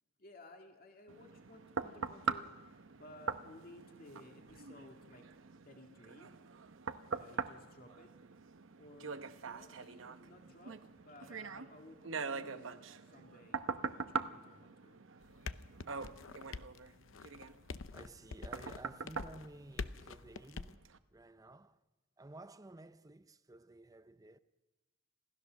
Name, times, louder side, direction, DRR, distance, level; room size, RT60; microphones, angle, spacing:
voice 1, 0.2-5.3 5.6-6.4 7.1-8.1 8.8-9.2 9.4-15.0, left 1 dB, 50° left, 2.2 m, -57 dB
sound 1, 1.1-20.3 20.8-21.0, right 4 dB, 85° right, 0.8 m, -43 dB
sound 2, 15.2-20.8, left 4 dB, 85° left, 0.7 m, -46 dB
voice 2, 17.9-20.9 21.1-21.8 22.2-24.4, right 2 dB, 20° right, 0.6 m, -54 dB
27.0 x 16.0 x 6.4 m
head